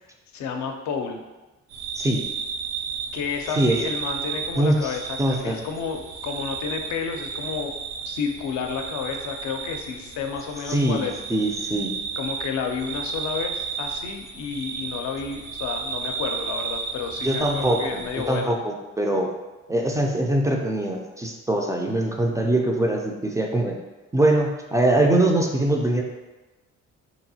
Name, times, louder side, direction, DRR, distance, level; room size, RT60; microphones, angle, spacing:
voice 1, 0.3-1.2 3.1-7.7 8.1-11.2 12.2-18.6, left 6 dB, 65° left, 4 dB, 0.5 m, -31 dB
sound 1, 1.7-18.4, right 5 dB, 90° right, 0.6 m, -33 dB
voice 2, 4.6-5.6 10.7-11.0 11.3-11.9 17.2-18.0 18.3-19.3 19.7-23.8 24.1-26.0, right 1 dB, 10° right, 0 dB, 0.3 m, -22 dB
2.9 x 2.6 x 2.7 m, 1.1 s
cardioid pair, 90°, 30 cm